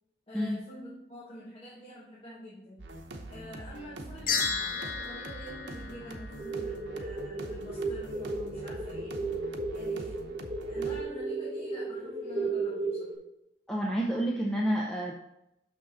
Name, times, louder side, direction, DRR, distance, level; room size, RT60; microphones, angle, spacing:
voice 1, 0.3-2.9 3.3-9.3 9.7-10.3 10.7-13.2, equal, 30° left, -8 dB, 1.5 m, -47 dB
sound 1, 2.8-11.0, right 1 dB, 90° right, 0.9 m, -44 dB
sound 2, 4.3-6.7, left 5 dB, 50° left, 1.3 m, -33 dB
sound 3, 6.4-13.1, right 3 dB, 30° right, 2.7 m, -34 dB
voice 2, 13.7-15.1, equal, 5° left, -3 dB, 0.6 m, -29 dB
6.3 x 6.2 x 4.1 m, 0.85 s
head